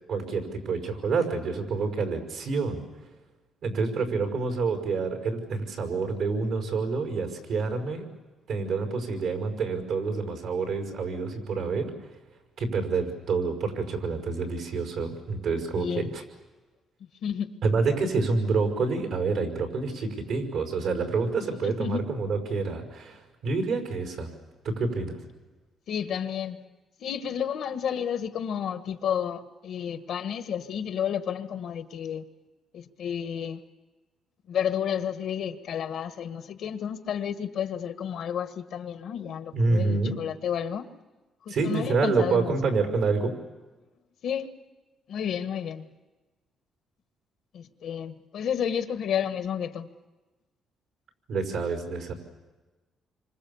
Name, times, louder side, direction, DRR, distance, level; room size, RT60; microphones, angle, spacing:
voice 1, 0.1-2.8 3.6-8.0 8.5-11.9 12.6-16.2 17.6-24.3 24.6-25.2 39.5-40.1 41.5-43.3 51.3-52.1, right 4 dB, 75° right, 5 dB, 5.5 m, -27 dB
voice 2, 15.8-16.1 17.2-17.5 21.6-22.0 25.9-26.6 27.0-32.2 32.7-33.6 34.5-40.9 41.4-42.5 44.2-44.5 45.1-45.9 47.5-49.9, left 8 dB, 70° left, 10 dB, 1.4 m, -31 dB
27.5 x 25.5 x 7.1 m, 1.2 s
cardioid pair, 90°, 0 cm